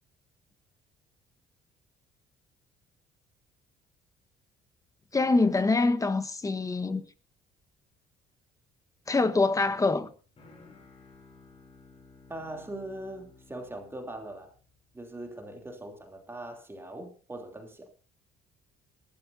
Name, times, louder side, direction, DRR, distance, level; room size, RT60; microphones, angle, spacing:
voice 1, 5.1-7.0 9.1-10.1, left 3 dB, 20° left, 1.3 m, -25 dB
sound 1, 9.6-15.3, left 3 dB, 35° left, 7.1 m, -56 dB
voice 2, 12.3-14.5 14.9-17.9, right 1 dB, 15° right, 3.1 m, -41 dB
20.5 x 12.5 x 2.7 m
cardioid pair, 110°, 17 cm